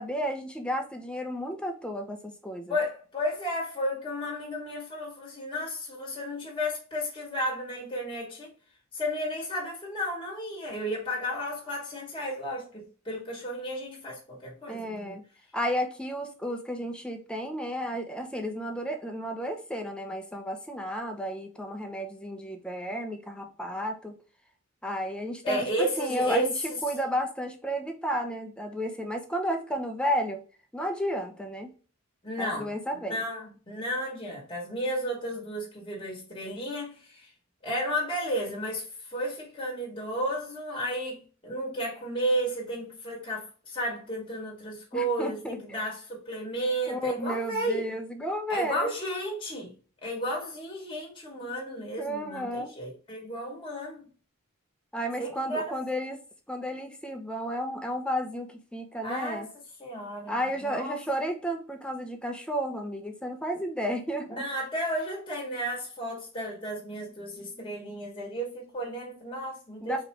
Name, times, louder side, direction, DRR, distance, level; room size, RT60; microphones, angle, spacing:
voice 1, 0.0-2.7 14.7-15.2 15.5-24.2 24.8-30.4 30.7-31.7 32.4-33.2 44.9-45.8 46.9-48.9 52.0-52.7 54.9-56.2 56.5-59.5 60.3-64.5 69.8-70.0, equal, 5° left, 0.7 m, -32 dB
voice 2, 2.7-8.5 8.9-15.2 25.4-26.5 32.2-32.7 33.1-37.3 37.6-47.8 48.5-49.7 50.0-54.0 55.2-55.6 59.0-59.5 59.8-60.3 60.6-60.9 64.3-70.0, equal, 25° left, 2.2 m, -33 dB
4.9 x 3.1 x 3.1 m
head